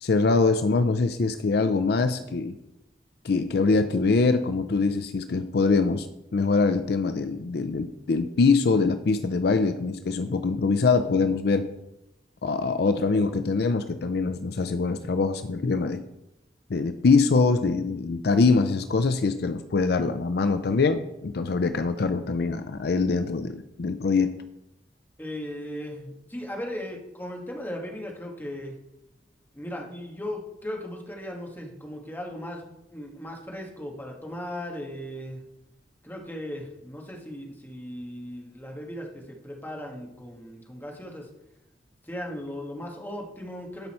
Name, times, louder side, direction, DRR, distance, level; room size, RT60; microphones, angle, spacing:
voice 1, 0.0-2.6 3.2-6.1 6.3-11.7 12.4-16.0 16.7-24.3, left 4 dB, 65° left, 10 dB, 0.5 m, -23 dB
voice 2, 25.2-28.7 29.5-32.6 32.9-35.4 36.0-41.3 42.0-43.9, left 1 dB, 10° left, 0 dB, 1.6 m, -37 dB
12.0 x 5.5 x 4.3 m, 0.89 s
head